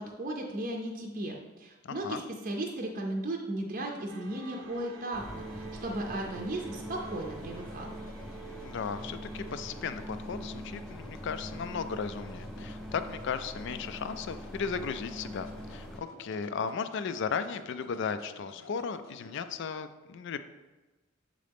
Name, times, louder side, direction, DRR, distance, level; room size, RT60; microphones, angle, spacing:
voice 1, 0.0-8.0, right 1 dB, 40° right, 1 dB, 0.6 m, -36 dB
voice 2, 1.8-2.2 8.6-20.4, left 6 dB, 60° left, 11 dB, 0.4 m, -36 dB
sound 1, 4.1-10.1, right 7 dB, 75° right, 0.7 m, -48 dB
sound 2, 4.2-19.6, left 2 dB, 85° left, 0.8 m, -54 dB
sound 3, 5.1-16.0, equal, ahead, 0.5 m, -43 dB
7.5 x 3.7 x 3.5 m, 1.2 s
head